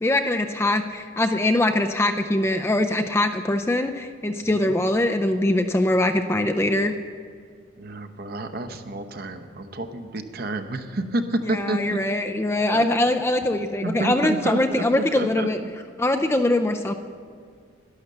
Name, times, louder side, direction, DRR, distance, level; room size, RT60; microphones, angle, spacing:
voice 1, 0.0-6.9 11.5-15.6 16.0-16.9, left 1 dB, 15° left, 6 dB, 0.4 m, -22 dB
voice 2, 7.8-12.0 12.7-13.1 13.8-15.7, right 2 dB, 50° right, 8 dB, 0.8 m, -29 dB
11.5 x 11.0 x 6.6 m, 2.1 s
head